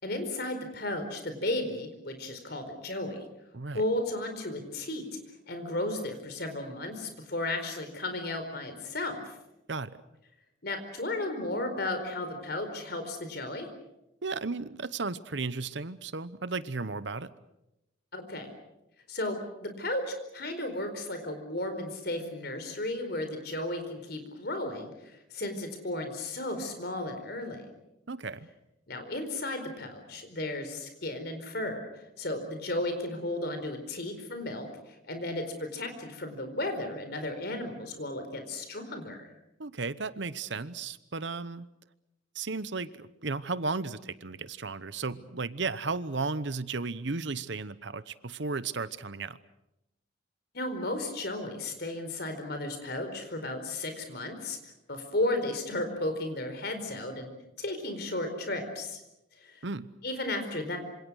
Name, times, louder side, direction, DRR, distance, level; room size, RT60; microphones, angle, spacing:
voice 1, 0.0-3.2 3.7-5.0 5.5-9.4 10.6-13.7 18.1-18.5 19.1-27.7 28.9-39.3 50.5-54.6 54.9-57.3 57.6-59.0 59.4-59.6 60.0-60.8, left 1 dB, 55° left, 7 dB, 4.6 m, -34 dB
voice 2, 3.5-3.8 9.7-10.0 14.2-17.3 28.1-28.5 39.6-41.7 42.3-49.4 59.6-59.9, right 4 dB, 65° right, 15 dB, 1.0 m, -34 dB
26.5 x 26.5 x 6.4 m, 0.89 s
head